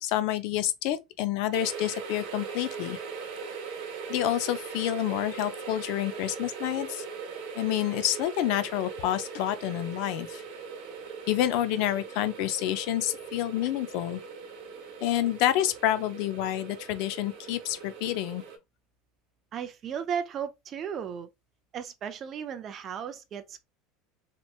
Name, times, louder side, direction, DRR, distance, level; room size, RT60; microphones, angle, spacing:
voice 1, 0.0-3.0 4.1-7.0 7.5-10.4 11.3-14.2 15.0-18.4, left 12 dB, 50° left, 0.4 m, -28 dB
sound 1, 1.5-18.6, right 5 dB, 60° right, 0.9 m, -40 dB
voice 2, 19.5-21.3 21.7-23.6, right 7 dB, 25° right, 0.4 m, -35 dB
3.2 x 2.9 x 2.3 m
cardioid pair, 175°, 0 cm